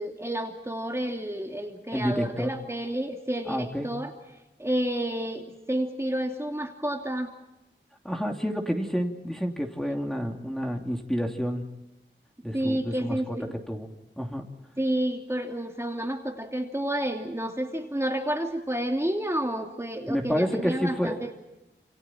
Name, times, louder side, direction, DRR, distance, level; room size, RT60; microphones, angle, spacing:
voice 1, 0.0-4.1 4.6-7.3 12.5-13.6 14.8-21.4, right 1 dB, 15° right, 2 dB, 2.8 m, -30 dB
voice 2, 1.9-2.5 3.5-3.9 8.0-11.6 12.4-13.4 13.7-13.9 14.2-14.4 20.1-21.1, equal, ahead, 1 dB, 2.9 m, -29 dB
29.0 x 28.5 x 4.5 m, 0.97 s
wide cardioid pair, 65°, 20 cm